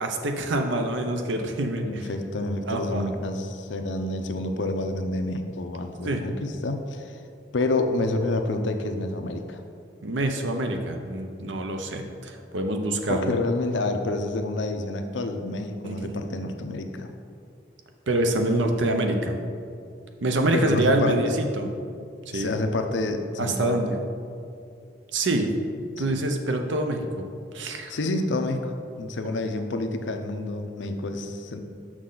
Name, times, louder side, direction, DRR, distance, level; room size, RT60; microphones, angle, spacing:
voice 1, 0.0-2.0 2.7-3.0 6.0-6.2 10.0-13.4 15.8-16.2 18.1-19.4 20.2-21.7 22.3-22.5 23.4-23.9 25.1-25.5 26.0-27.3 27.5-28.0, right 1 dB, 85° right, 5 dB, 0.7 m, -26 dB
voice 2, 1.8-7.2 7.5-9.6 13.1-17.1 20.5-21.1 22.3-23.8 26.1-26.2 27.9-28.7 29.0-31.6, left 2 dB, 80° left, 6 dB, 0.6 m, -28 dB
6.4 x 6.1 x 3.9 m, 2.4 s
head